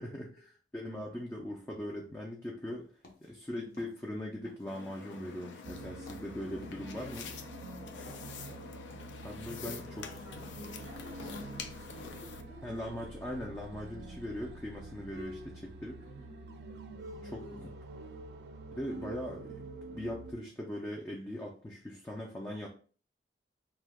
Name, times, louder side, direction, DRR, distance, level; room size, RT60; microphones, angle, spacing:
voice 1, 0.0-2.9 3.2-7.3 9.2-10.1 12.6-16.0 17.3-17.7 18.7-22.7, left 1 dB, 15° left, -1 dB, 0.3 m, -40 dB
sound 1, 2.8-4.8 5.1-12.3, left 2 dB, 50° left, 0.6 m, -58 dB
voice 2, 3.5-3.9 7.9-8.7 9.7-13.1 16.0-17.6 17.9-18.2 22.4-22.7, equal, 70° left, -4 dB, 1.1 m, -52 dB
sound 2, 4.7-12.4, left 5 dB, 90° left, 0.4 m, -46 dB
sound 3, 5.6-20.3, right 2 dB, 65° right, 0.4 m, -47 dB
2.7 x 2.2 x 3.4 m, 0.41 s
head